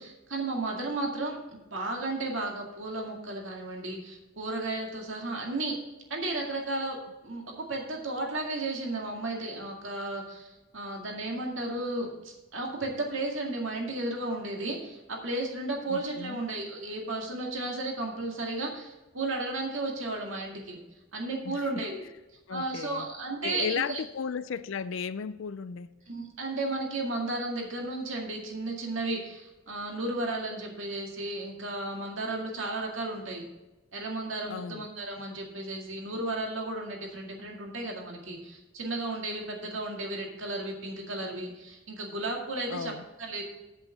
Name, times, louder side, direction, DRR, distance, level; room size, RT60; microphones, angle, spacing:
voice 1, 0.0-5.8 6.1-7.0 7.2-20.8 21.1-22.0 22.5-24.0 26.1-33.4 33.9-42.9 43.2-43.4, right 2 dB, 70° right, 2.1 m, -34 dB
voice 2, 15.9-16.4 21.4-21.8 22.5-23.1 23.4-25.9 34.5-34.9 42.7-43.1, left 6 dB, 70° left, 0.4 m, -35 dB
8.3 x 7.9 x 4.8 m
head